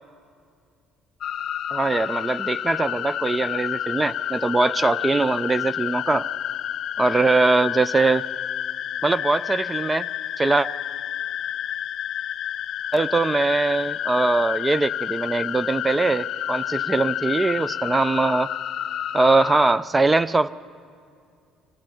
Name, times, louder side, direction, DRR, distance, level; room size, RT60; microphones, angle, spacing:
sound 1, 1.2-19.7, left 11 dB, 60° left, 0.5 m, -29 dB
voice 1, 1.7-6.3 7.0-8.2 9.0-10.1 10.4-10.7 12.9-18.5 19.1-20.5, right 3 dB, 20° right, 17 dB, 0.4 m, -21 dB
25.0 x 16.0 x 7.0 m, 2.4 s
supercardioid pair, 70°, 0 cm